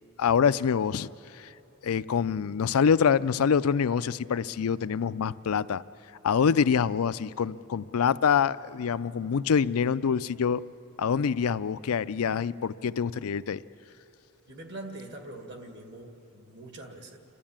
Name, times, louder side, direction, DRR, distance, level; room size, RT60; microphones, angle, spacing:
voice 1, 0.2-1.5 1.8-5.8 6.2-10.6 11.0-13.6, left 6 dB, 85° left, 14 dB, 0.4 m, -25 dB
voice 2, 14.5-17.2, right 2 dB, 55° right, 4 dB, 2.2 m, -43 dB
29.5 x 12.5 x 8.8 m, 2.9 s
head